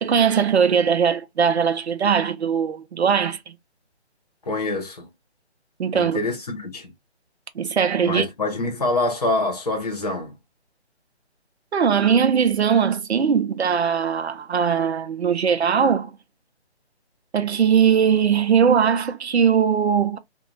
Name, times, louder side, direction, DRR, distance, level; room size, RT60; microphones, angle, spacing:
voice 1, 0.0-3.5 5.8-6.2 7.5-8.3 11.7-16.1 17.3-20.2, right 7 dB, 70° right, 0.7 m, -20 dB
voice 2, 4.5-5.1 5.9-6.9 8.0-10.3, left 2 dB, 35° left, 0.8 m, -25 dB
2.5 x 2.2 x 3.0 m
hypercardioid pair, 175°, 34 cm